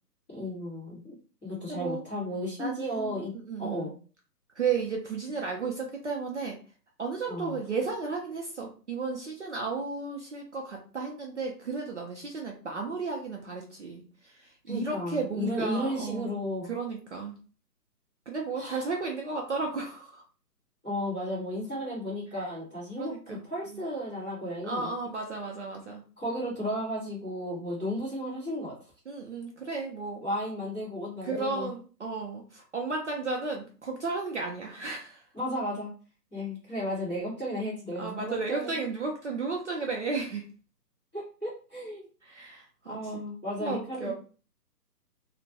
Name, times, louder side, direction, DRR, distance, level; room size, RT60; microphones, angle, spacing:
voice 1, 0.3-1.1 1.4-3.3 3.6-3.9 7.3-7.6 14.7-16.8 18.5-18.8 20.8-24.9 26.2-28.7 30.2-31.7 35.3-35.9 36.3-38.9 41.1-42.0 42.8-44.1, equal, 5° left, -16 dB, 0.7 m, -34 dB
voice 2, 1.7-2.0 2.6-3.2 3.5-3.9 4.6-6.6 7.0-16.4 16.7-17.3 18.3-20.2 23.0-23.4 23.7-23.8 24.7-26.0 29.1-30.2 31.2-35.2 38.0-40.4 42.2-43.0 43.6-44.1, right 4 dB, 50° right, 0 dB, 0.5 m, -34 dB
2.1 x 2.1 x 2.7 m, 0.37 s
hypercardioid pair, 155°, 49 cm